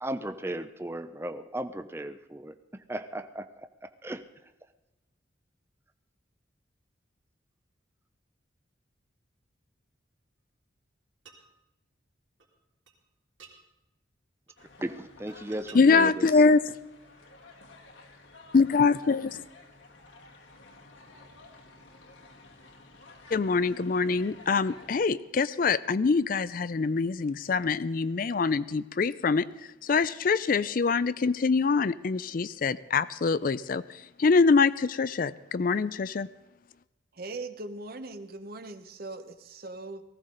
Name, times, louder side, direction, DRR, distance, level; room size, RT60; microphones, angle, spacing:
voice 1, 0.0-4.3 14.8-16.4, right 1 dB, 15° right, 10 dB, 0.5 m, -36 dB
sound 1, 11.2-11.4 12.4-12.5 12.9-13.0 13.4-13.6 14.5-14.7 15.3-15.8 16.7-16.8, right 5 dB, 85° right, 3.6 m, -51 dB
sound 2, 14.6-25.1, left 2 dB, 80° left, 2.1 m, -52 dB
voice 2, 15.7-16.6 18.5-19.4 23.3-29.4 29.8-33.8 34.2-36.3, left 4 dB, 45° left, 16 dB, 0.4 m, -24 dB
voice 3, 37.1-40.0, right 2 dB, 50° right, 10 dB, 0.9 m, -40 dB
19.0 x 15.5 x 3.9 m, 0.99 s
head